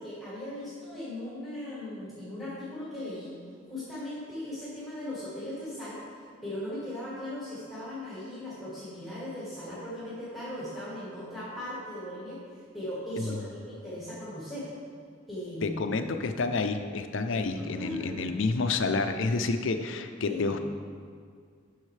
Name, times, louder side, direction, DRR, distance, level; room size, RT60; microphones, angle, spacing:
voice 1, 0.0-3.4 3.7-6.0 6.4-14.7 15.3-15.9 17.6-18.4 20.2-20.6, left 1 dB, ahead, -10 dB, 2.1 m, -38 dB
voice 2, 15.6-20.7, left 3 dB, 70° left, 7 dB, 0.5 m, -29 dB
11.0 x 6.4 x 3.3 m, 2.1 s
head